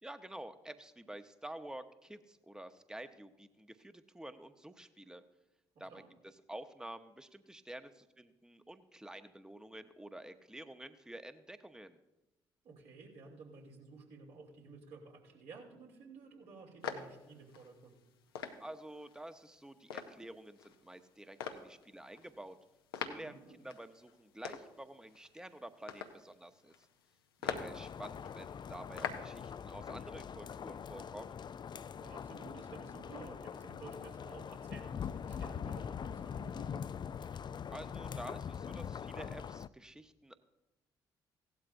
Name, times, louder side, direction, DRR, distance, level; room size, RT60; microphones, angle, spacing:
voice 1, 0.0-5.2 5.8-6.0 6.5-12.0 18.6-22.6 23.0-26.7 27.4-31.4 37.7-40.4, right 1 dB, 5° right, 9 dB, 0.9 m, -49 dB
voice 2, 5.7-6.1 12.6-17.9 23.1-23.7 31.9-36.9, right 4 dB, 65° right, -1 dB, 2.8 m, -53 dB
sound 1, 16.8-29.5, left 7 dB, 85° left, 0.7 m, -45 dB
sound 2, 27.4-39.7, left 7 dB, 40° left, 0.4 m, -43 dB
16.5 x 12.0 x 2.6 m, 0.97 s
hypercardioid pair, 45°, 12 cm